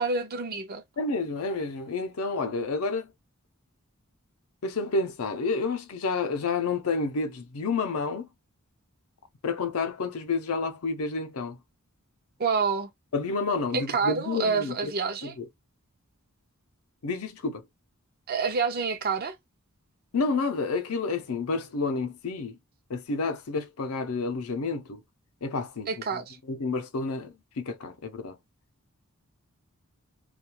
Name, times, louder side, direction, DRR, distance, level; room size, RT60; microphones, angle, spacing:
voice 1, 0.0-0.8 12.4-12.9 13.7-15.3 18.3-19.4 25.9-26.4, right 5 dB, 45° right, 0.5 m, -28 dB
voice 2, 1.0-3.1 4.6-8.3 9.4-11.6 13.1-14.9 15.2-15.5 17.0-17.6 20.1-22.6 22.9-25.0 25.4-25.9 26.5-28.4, left 4 dB, 75° left, 0.5 m, -29 dB
2.3 x 2.3 x 2.8 m
head